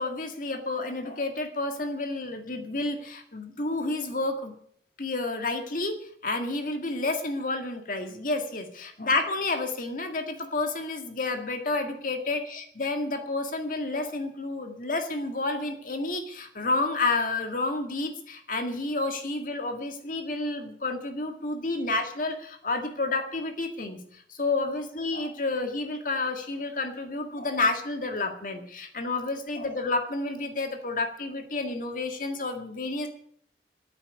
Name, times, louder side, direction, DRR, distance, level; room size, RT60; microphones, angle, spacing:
voice 1, 0.0-4.5 5.0-33.1, left 2 dB, 45° left, 6 dB, 1.9 m, -30 dB
14.0 x 8.7 x 9.5 m, 0.63 s
head